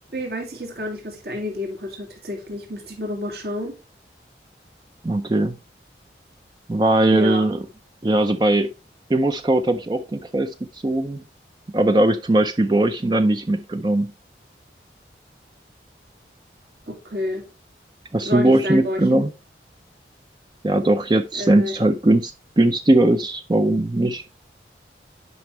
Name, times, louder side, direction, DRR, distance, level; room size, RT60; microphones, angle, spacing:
voice 1, 0.1-3.7 7.1-7.5 16.9-17.5 18.2-19.2 21.4-21.7, left 1 dB, 65° right, 2.2 m, -29 dB
voice 2, 5.0-5.6 6.7-7.6 8.0-8.7 9.1-10.5 10.8-11.2 11.7-14.1 18.1-19.3 20.6-24.2, right 1 dB, 25° right, 0.5 m, -19 dB
9.4 x 5.3 x 3.2 m
head